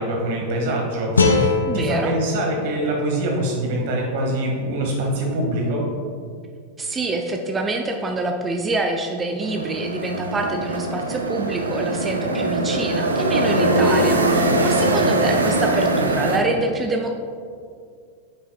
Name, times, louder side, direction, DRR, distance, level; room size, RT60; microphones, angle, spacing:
voice 1, 0.0-5.8, right 1 dB, 50° right, -1 dB, 1.5 m, -24 dB
sound 1, 1.2-4.3, left 3 dB, 75° left, 0.5 m, -23 dB
voice 2, 1.6-2.1 6.8-17.1, right 2 dB, 15° right, 3 dB, 0.4 m, -26 dB
sound 2, 9.4-16.4, right 2 dB, 75° right, 0.6 m, -21 dB
9.3 x 5.7 x 2.2 m, 2.2 s
figure-of-eight pair, 90°, 0 cm